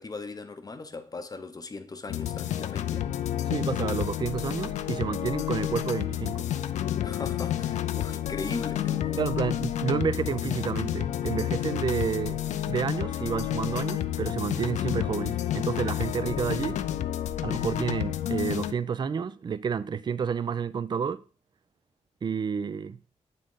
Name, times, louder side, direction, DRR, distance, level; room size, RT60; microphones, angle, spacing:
voice 1, 0.0-3.1 7.0-9.3, left 3 dB, 35° left, 0.7 m, -38 dB
sound 1, 2.1-18.7, left 11 dB, 85° left, 0.4 m, -30 dB
voice 2, 3.5-6.5 9.2-12.4 12.7-16.8 17.4-21.2 22.2-23.0, right 6 dB, 40° right, 0.4 m, -30 dB
7.5 x 3.8 x 3.6 m
cardioid pair, 70°, 12 cm